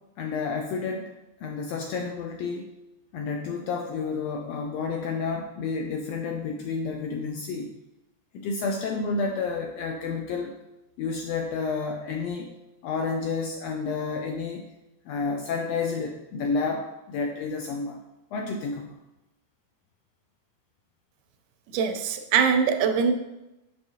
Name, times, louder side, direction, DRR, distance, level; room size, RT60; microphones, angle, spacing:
voice 1, 0.2-1.1 1.4-2.7 3.1-7.7 8.3-10.5 11.0-12.5 12.8-14.6 15.1-18.0 18.3-19.0, left 4 dB, 85° left, 2 dB, 1.4 m, -30 dB
voice 2, 21.7-23.1, right 6 dB, 90° right, 6 dB, 2.2 m, -22 dB
6.8 x 6.4 x 2.8 m, 0.96 s
omnidirectional pair, 3.5 m